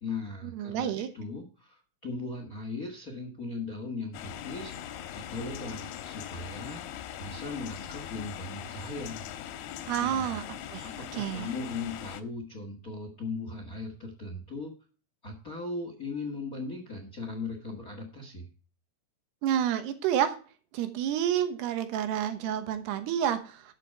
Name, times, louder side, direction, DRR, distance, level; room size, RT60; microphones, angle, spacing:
voice 1, 0.0-4.7 5.1-6.8 7.2-9.2 10.0-10.4 10.8-14.7 15.2-18.5, left 3 dB, 40° left, 4 dB, 1.2 m, -38 dB
voice 2, 0.5-1.1 9.9-10.4 10.7-10.9 11.1-11.5 19.4-20.4 20.7-23.6, right 10 dB, 90° right, 10 dB, 3.3 m, -29 dB
sound 1, 4.1-12.2, left 10 dB, 85° left, 2.9 m, -41 dB
12.0 x 6.7 x 4.7 m, 0.38 s
omnidirectional pair, 4.6 m